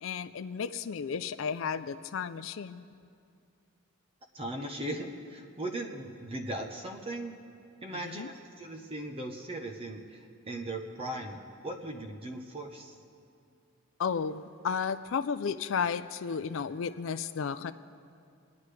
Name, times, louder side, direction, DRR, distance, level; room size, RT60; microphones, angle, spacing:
voice 1, 0.0-2.8 8.0-8.3 14.0-17.7, left 6 dB, 60° left, 11 dB, 0.4 m, -33 dB
voice 2, 4.3-7.3 7.8-13.0, right 1 dB, 25° right, 4 dB, 0.8 m, -38 dB
27.0 x 9.5 x 3.3 m, 2.4 s
head